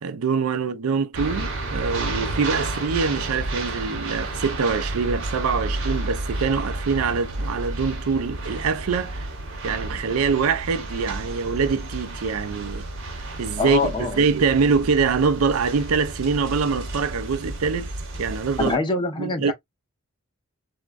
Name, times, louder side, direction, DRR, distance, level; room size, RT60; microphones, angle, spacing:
voice 1, 0.0-9.3 9.6-12.9 13.4-17.9 18.2-18.8 19.2-19.5, right 5 dB, 85° right, 0.4 m, -24 dB
sound 1, 1.1-18.7, right 2 dB, 65° right, 0.9 m, -31 dB
voice 2, 13.6-14.2 18.6-19.5, left 3 dB, 20° left, 0.5 m, -25 dB
3.6 x 2.1 x 2.3 m
head